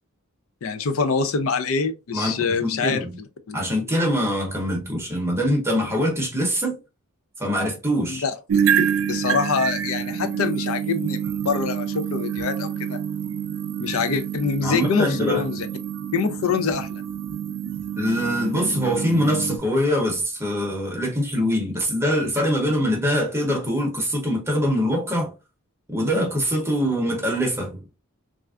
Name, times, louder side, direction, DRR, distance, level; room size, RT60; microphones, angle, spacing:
voice 1, 0.6-3.1 3.5-3.6 8.1-8.6 9.1-13.0 13.8-15.7 16.1-17.0, left 5 dB, 65° left, 0.4 m, -25 dB
voice 2, 2.1-3.2 3.5-6.7 7.4-8.3 14.6-15.4 18.0-25.3 25.9-27.8, equal, 10° right, 0.7 m, -23 dB
sound 1, 8.5-19.6, right 8 dB, 65° right, 0.3 m, -27 dB
3.2 x 2.4 x 2.3 m
head